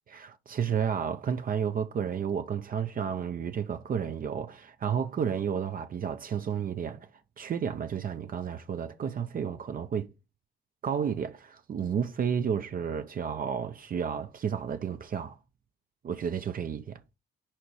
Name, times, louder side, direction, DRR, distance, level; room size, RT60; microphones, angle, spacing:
voice 1, 0.1-7.1 7.4-10.1 10.8-15.4 16.0-17.0, right 7 dB, 45° right, 0.6 m, -31 dB
5.1 x 4.3 x 4.7 m
cardioid pair, 90°, 20 cm